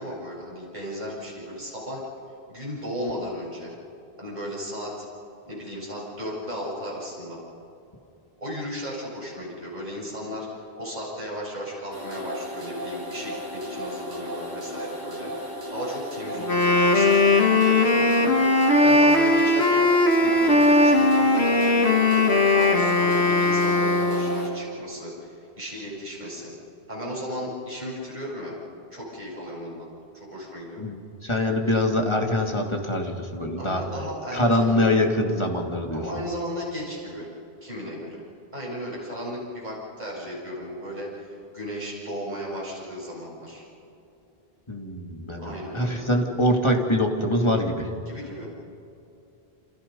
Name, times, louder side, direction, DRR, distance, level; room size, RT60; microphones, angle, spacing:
voice 1, 0.0-2.0 2.5-3.7 4.2-5.1 5.4-7.4 8.4-15.3 15.7-18.4 18.8-19.9 20.2-26.5 26.9-28.5 28.9-29.9 30.1-30.8 33.6-34.8 35.9-37.3 37.6-38.2 38.5-43.7 45.4-46.1 48.1-48.5, equal, 45° right, -5 dB, 8.0 m, -35 dB
sound 1, 11.9-24.5, equal, 20° right, 2.8 m, -35 dB
Wind instrument woodwind instrument, 16.3-24.5, left 2 dB, 85° left, 2.2 m, -19 dB
voice 2, 30.8-33.8 34.3-36.0 44.7-47.9, left 1 dB, 25° left, 2 dB, 2.4 m, -24 dB
29.0 x 27.0 x 5.4 m, 2.7 s
omnidirectional pair, 1.1 m